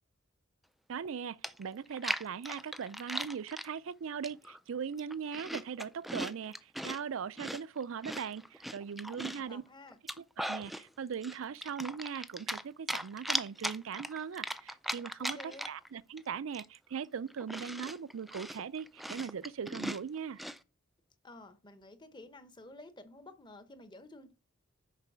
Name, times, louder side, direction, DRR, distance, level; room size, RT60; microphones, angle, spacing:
voice 1, 0.9-9.6 10.2-15.4 15.7-20.4, right 7 dB, 75° right, 0.4 m, -40 dB
Chewing mastication, 1.1-1.2 1.4-3.7 4.2-4.6 4.9-7.0 7.4-9.5 9.9-10.8 11.2-12.6 12.9-15.9 16.2-16.3 16.5-20.6, equal, ahead, 0.3 m, -38 dB
voice 2, 9.0-10.0 15.2-15.7 21.2-24.3, left 1 dB, 20° left, 0.9 m, -52 dB
6.7 x 5.3 x 6.1 m
head